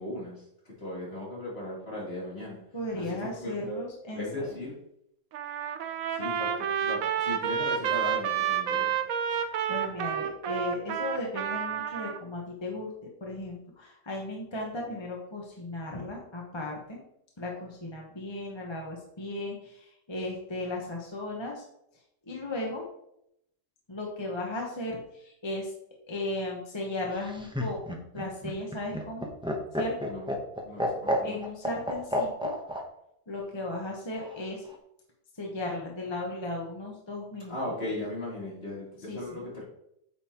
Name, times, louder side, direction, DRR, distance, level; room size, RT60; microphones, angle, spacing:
voice 1, 0.0-2.6 3.0-4.7 6.1-9.0 30.0-30.4 30.6-31.4 37.5-39.6, left 1 dB, 45° left, -6 dB, 3.2 m, -37 dB
voice 2, 2.7-4.5 9.3-12.9 13.2-17.0 17.4-21.6 22.3-22.8 23.9-25.7 26.1-29.3 29.7-30.1 31.2-32.5 33.3-34.6 35.4-37.5 39.1-39.5, left 2 dB, 20° left, -2 dB, 1.0 m, -36 dB
Trumpet, 5.3-12.2, right 8 dB, 80° right, 1.1 m, -30 dB
Laughter, 27.1-32.8 34.1-34.8, left 1 dB, 5° right, 0.7 m, -31 dB
8.6 x 5.5 x 2.9 m, 0.77 s
omnidirectional pair, 1.4 m